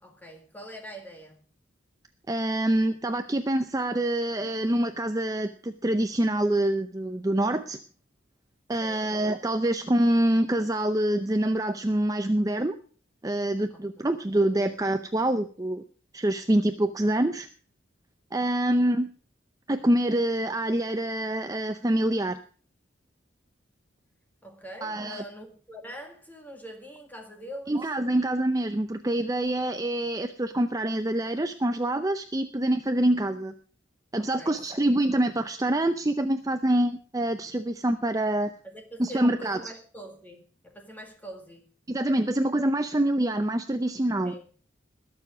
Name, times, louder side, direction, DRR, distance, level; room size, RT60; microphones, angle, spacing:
voice 1, 0.0-1.4 8.8-9.1 14.0-14.1 14.4-14.6 24.4-27.8 34.2-34.9 38.6-41.6 44.2-44.5, equal, 10° left, 1.9 m, -44 dB
voice 2, 2.3-7.8 8.7-12.8 13.2-15.8 16.1-17.5 18.3-19.1 19.7-22.4 24.8-25.2 27.7-33.5 34.1-38.5 39.0-39.7 41.9-44.3, right 1 dB, 15° right, 0.6 m, -26 dB
21.0 x 7.0 x 5.0 m
head